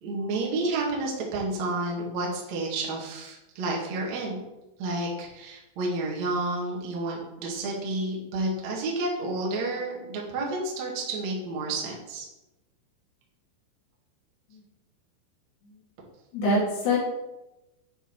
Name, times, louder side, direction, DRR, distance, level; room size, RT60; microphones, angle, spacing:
voice 1, 0.0-4.4 4.8-12.2, right 2 dB, 55° right, -3 dB, 2.0 m, -30 dB
voice 2, 16.3-17.0, left 1 dB, 60° left, -5 dB, 4.1 m, -25 dB
9.1 x 4.7 x 4.6 m, 0.96 s
omnidirectional pair, 5.7 m